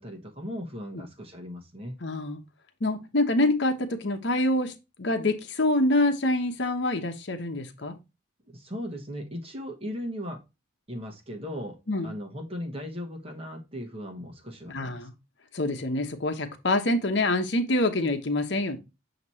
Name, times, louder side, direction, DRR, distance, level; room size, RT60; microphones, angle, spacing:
voice 1, 0.0-1.9 8.4-10.4 10.9-15.1, equal, 30° right, 1.2 m, -37 dB
voice 2, 2.0-2.4 2.8-4.7 5.0-8.0 11.9-12.1 14.7-15.1 15.5-18.8, left 2 dB, 55° left, 0.9 m, -26 dB
7.8 x 2.9 x 4.2 m
head